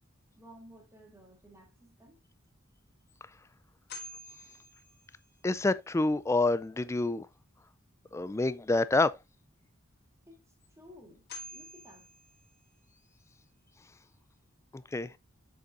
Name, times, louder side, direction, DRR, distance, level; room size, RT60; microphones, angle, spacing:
voice 1, 0.4-2.2 10.3-10.4 10.7-12.1 14.2-14.3, equal, 15° right, 2.3 m, -55 dB
sound 1, 2.4-2.5 3.1-3.2 3.9-5.5 10.6-10.7 11.3-12.9, left 2 dB, 50° left, 2.4 m, -48 dB
voice 2, 5.4-7.3 8.1-9.1 14.9-15.1, left 2 dB, 15° left, 0.3 m, -27 dB
7.5 x 6.8 x 2.5 m
head